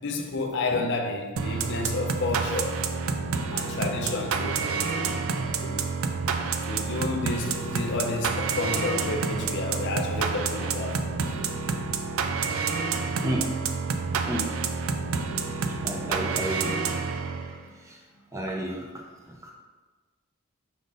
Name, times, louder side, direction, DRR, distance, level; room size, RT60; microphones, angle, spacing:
voice 1, 0.0-2.9 3.5-5.2 5.6-5.9 6.7-11.1, left 3 dB, 55° left, 3 dB, 0.5 m, -30 dB
sound 1, 1.4-17.7, right 5 dB, 65° right, 0.3 m, -29 dB
voice 2, 15.8-16.8 17.9-18.0 18.3-18.9 19.4-19.5, equal, 15° right, -1 dB, 0.5 m, -31 dB
5.0 x 2.5 x 3.8 m, 1.3 s
head